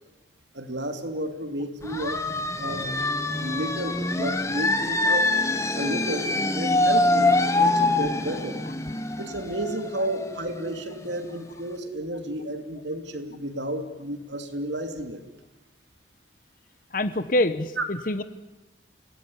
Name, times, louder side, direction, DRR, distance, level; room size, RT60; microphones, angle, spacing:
voice 1, 0.5-2.2 2.6-3.0 3.4-5.3 5.7-8.6 9.2-15.2 17.8-17.9, right 1 dB, 80° right, 7 dB, 3.1 m, -32 dB
sound 1, 1.8-11.3, left 2 dB, 15° left, 1.5 m, -25 dB
voice 2, 16.9-18.2, left 1 dB, 50° left, 13 dB, 1.1 m, -25 dB
28.5 x 19.0 x 9.9 m, 1.1 s
head